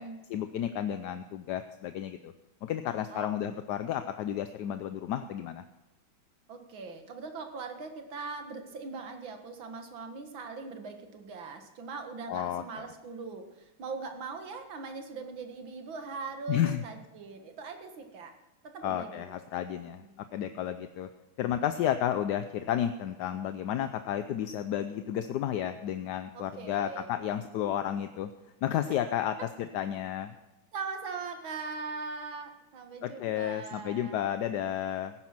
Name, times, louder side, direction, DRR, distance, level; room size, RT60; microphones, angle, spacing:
voice 1, 0.3-2.3 2.6-5.6 12.3-12.8 16.5-16.8 18.8-20.0 20.3-21.1 21.4-28.3 28.6-30.3 33.0-35.1, left 10 dB, 70° left, 10 dB, 1.1 m, -32 dB
voice 2, 6.5-18.4 18.6-19.3 20.0-20.1 26.3-27.1 30.7-34.2, right 4 dB, 75° right, 6 dB, 2.4 m, -41 dB
16.5 x 9.9 x 6.0 m, 1.0 s
omnidirectional pair, 2.2 m